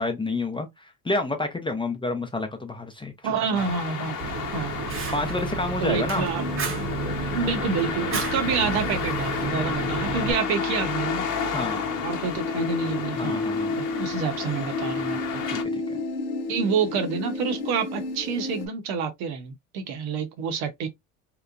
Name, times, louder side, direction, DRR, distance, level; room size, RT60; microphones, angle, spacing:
voice 1, 0.0-3.1 5.1-6.3 11.5-11.9 13.1-13.9 15.5-16.0, left 2 dB, 10° left, 0.5 m, -29 dB
voice 2, 3.2-4.2 4.5-4.7 5.8-6.5 7.3-11.3 12.0-13.4 13.8-15.4 16.5-20.9, right 6 dB, 65° right, 0.8 m, -28 dB
sound 1, 3.5-15.6, left 7 dB, 45° left, 0.8 m, -33 dB
Fire, 4.2-10.3, right 4 dB, 30° right, 0.7 m, -31 dB
sound 2, 6.3-18.7, left 3 dB, 70° left, 1.0 m, -32 dB
2.9 x 2.1 x 2.4 m
hypercardioid pair, 80°, 42 cm